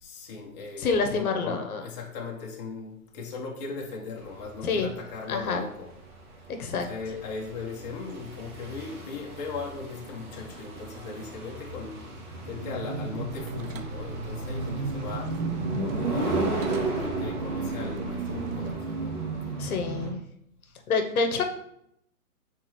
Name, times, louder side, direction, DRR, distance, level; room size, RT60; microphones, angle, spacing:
voice 1, 0.0-5.9 6.8-12.1 12.4-15.3 16.0-19.2, left 4 dB, 30° left, -1 dB, 0.7 m, -38 dB
voice 2, 0.8-1.8 4.6-4.9 5.3-5.6 6.6-6.9 19.6-20.2 20.9-21.4, left 4 dB, 75° left, 5 dB, 0.9 m, -27 dB
sound 1, 4.3-20.1, right 3 dB, 85° right, 1.9 m, -33 dB
sound 2, 13.3-18.7, right 3 dB, 60° right, 0.5 m, -38 dB
4.8 x 3.7 x 3.0 m, 0.74 s
hypercardioid pair, 150°, 44 cm